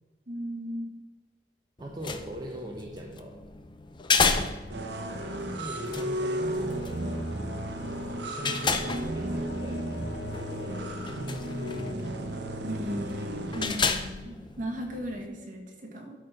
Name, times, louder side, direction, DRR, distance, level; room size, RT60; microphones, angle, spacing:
voice 1, 0.3-1.0 12.6-16.2, equal, 50° right, 1 dB, 1.9 m, -36 dB
sound 1, 1.8-15.3, left 4 dB, 25° left, 0.6 m, -33 dB
voice 2, 1.8-3.3 5.3-7.3 8.1-11.7, right 1 dB, 25° right, -1 dB, 0.8 m, -41 dB
sound 2, 4.7-13.6, right 1 dB, 70° right, 1.1 m, -34 dB
sound 3, 4.9-11.9, left 4 dB, 70° left, 0.6 m, -44 dB
12.5 x 4.5 x 5.0 m, 1.3 s
head